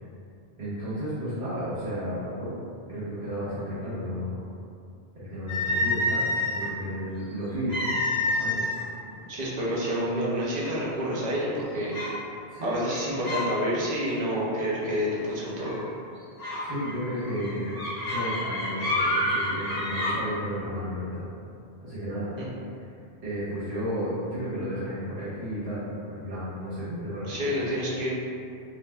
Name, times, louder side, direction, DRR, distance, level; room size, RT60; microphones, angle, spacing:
voice 1, 0.6-2.6 2.9-4.5 5.1-7.8 8.2-8.6 12.5-12.7 16.6-21.3 21.8-22.3 23.2-27.4, equal, 80° right, -12 dB, 1.2 m, -33 dB
sound 1, 5.5-6.7 7.7-8.8 9.2-9.4 10.1-10.2 10.7-11.1 11.9-12.2 12.8-13.5 13.8-14.1 15.6-15.8 16.4-20.1, left 1 dB, 20° left, 0.7 m, -28 dB
voice 2, 9.3-12.0 12.6-15.8 22.4-22.5 27.3-28.1, equal, 50° right, -6 dB, 0.6 m, -28 dB
2.4 x 2.0 x 3.3 m, 2.4 s
omnidirectional pair, 1.1 m